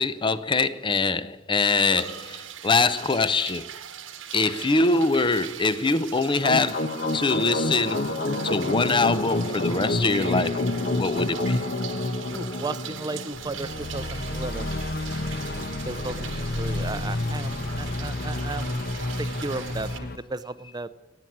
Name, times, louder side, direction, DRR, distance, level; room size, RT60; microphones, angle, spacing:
voice 1, 0.0-3.7 4.3-8.1 8.4-10.6 10.9-11.6, left 3 dB, 25° left, 0.6 m, -23 dB
sound 1, 1.6-20.0, right 9 dB, 70° right, 1.1 m, -41 dB
sound 2, 6.4-20.2, left 2 dB, 50° left, 1.1 m, -29 dB
voice 2, 12.3-14.8 15.6-18.8 19.2-20.9, right 2 dB, 20° right, 0.6 m, -35 dB
17.0 x 9.3 x 8.6 m
head